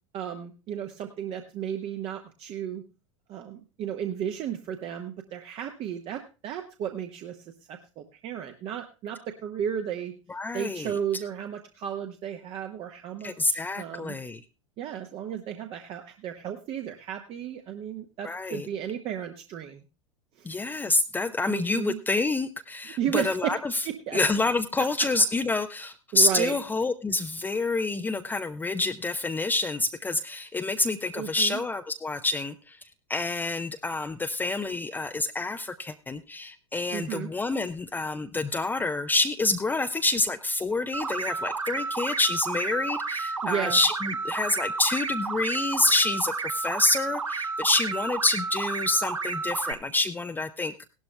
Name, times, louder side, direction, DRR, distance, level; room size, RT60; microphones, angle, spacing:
voice 1, 0.1-2.8 3.3-10.1 10.5-14.1 14.8-19.8 20.4-20.5 21.5-22.0 22.8-23.6 23.8-24.2 26.1-26.5 31.1-31.6 36.9-37.3 43.4-43.8, right 9 dB, 35° right, 5 dB, 1.1 m, -34 dB
voice 2, 10.3-11.0 13.2-14.4 18.2-18.7 20.4-23.8 24.1-50.7, left 2 dB, 10° left, 7 dB, 0.6 m, -27 dB
sound 1, 40.9-49.7, right 4 dB, 80° right, 0.9 m, -31 dB
17.5 x 12.0 x 2.2 m, 0.32 s
figure-of-eight pair, 85°, 16 cm